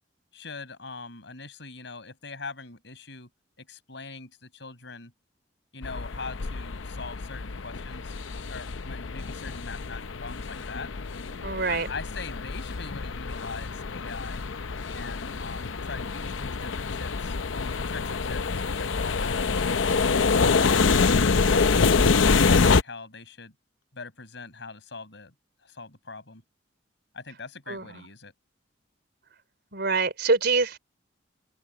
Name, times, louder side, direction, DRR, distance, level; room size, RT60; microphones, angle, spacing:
voice 1, 0.3-3.3 3.6-5.1 5.7-8.2 8.5-10.9 11.7-14.5 14.9-17.4 17.9-19.5 21.8-23.5 23.9-25.3 25.6-26.4 27.1-28.3, left 4 dB, 65° left, 6.1 m, -42 dB
sound 1, 5.8-22.8, left 4 dB, 90° left, 0.7 m, -26 dB
voice 2, 11.4-11.9 27.7-27.8 29.7-30.8, right 3 dB, 60° right, 4.0 m, -25 dB
open air
head